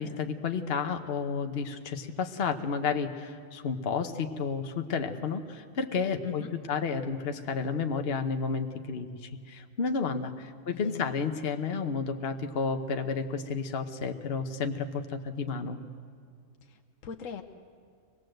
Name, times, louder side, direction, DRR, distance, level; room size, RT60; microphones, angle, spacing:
voice 1, 0.0-15.8, left 5 dB, 50° left, 6 dB, 1.2 m, -31 dB
voice 2, 10.7-11.1 16.7-17.4, left 7 dB, 70° left, 6 dB, 1.2 m, -40 dB
24.0 x 19.5 x 7.8 m, 2.2 s
omnidirectional pair, 1.4 m